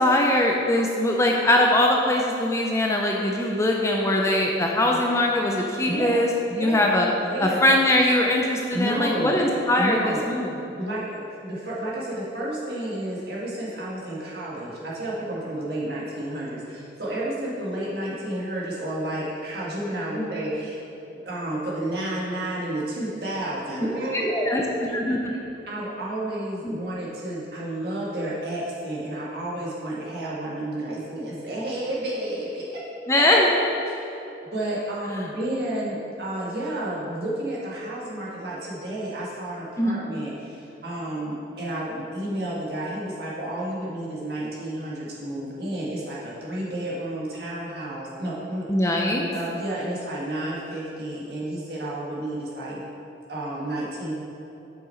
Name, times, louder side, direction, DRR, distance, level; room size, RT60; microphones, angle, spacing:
voice 1, 0.0-7.1 7.4-10.5 20.2-20.3 24.1-24.6 24.9-25.3 26.6-26.7 33.1-33.5 39.8-40.0 48.7-49.3, left 1 dB, 15° left, 0 dB, 0.5 m, -21 dB
voice 2, 5.9-6.2 6.5-6.8 7.2-7.6 8.7-9.4 9.8-10.2 10.7-20.8 21.2-24.4 24.9-25.0 25.3-25.4 25.7-32.8 33.9-34.0 34.5-48.6 49.3-52.8 53.3-54.1, right 1 dB, 55° right, -6 dB, 1.8 m, -31 dB
6.7 x 6.3 x 4.3 m, 3.0 s
head